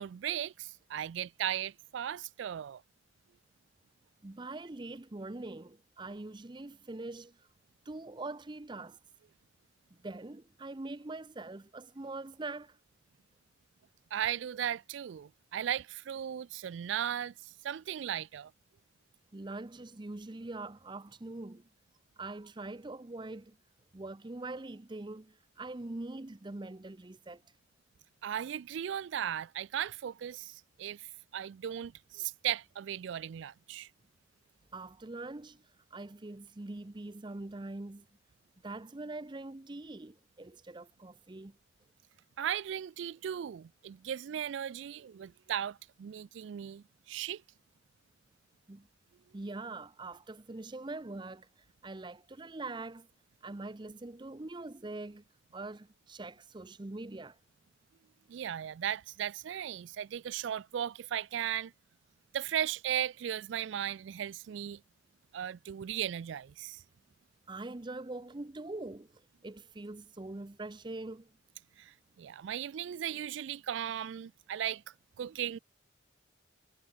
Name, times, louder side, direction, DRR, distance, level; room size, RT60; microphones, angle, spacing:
voice 1, 0.0-2.8 14.1-18.5 28.2-33.9 42.4-47.4 58.3-61.7 62.3-64.8 65.3-66.8 71.8-74.8 75.2-75.6, right 10 dB, 70° right, 0.3 m, -37 dB
voice 2, 4.2-7.5 7.9-9.0 10.0-12.8 19.3-21.7 22.2-23.6 23.9-27.4 34.7-35.6 35.9-38.1 38.6-41.6 48.7-48.9 49.3-51.5 51.8-53.1 53.4-55.2 55.5-57.4 67.5-71.4, right 2 dB, 25° right, 0.6 m, -43 dB
head